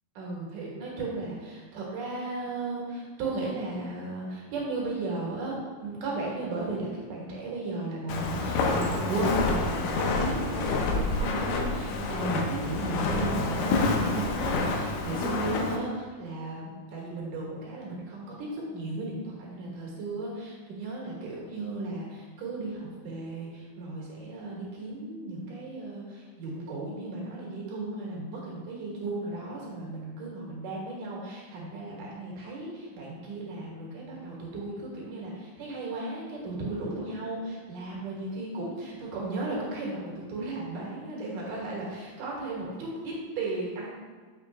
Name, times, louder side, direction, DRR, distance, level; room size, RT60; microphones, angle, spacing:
voice 1, 0.1-43.9, right 2 dB, 70° right, -4 dB, 3.0 m, -35 dB
Walk footsteps, 8.1-15.8, left 3 dB, 75° left, 2.2 m, -28 dB
7.2 x 5.7 x 3.4 m, 1.5 s
omnidirectional pair, 4.0 m